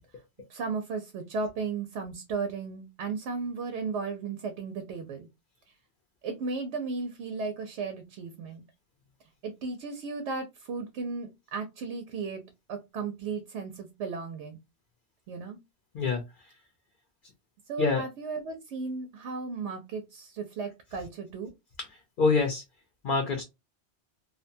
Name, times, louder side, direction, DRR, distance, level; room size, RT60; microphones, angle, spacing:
voice 1, 0.5-5.3 5.7-5.8 6.2-8.6 9.4-12.4 12.7-14.6 15.3-15.6 17.7-21.5, right 4 dB, 85° right, 6 dB, 0.9 m, -35 dB
voice 2, 15.9-16.5 17.8-18.0 21.8-22.6 23.0-23.4, left 4 dB, 55° left, 4 dB, 0.7 m, -26 dB
2.7 x 2.1 x 2.6 m, 0.22 s
omnidirectional pair, 1.1 m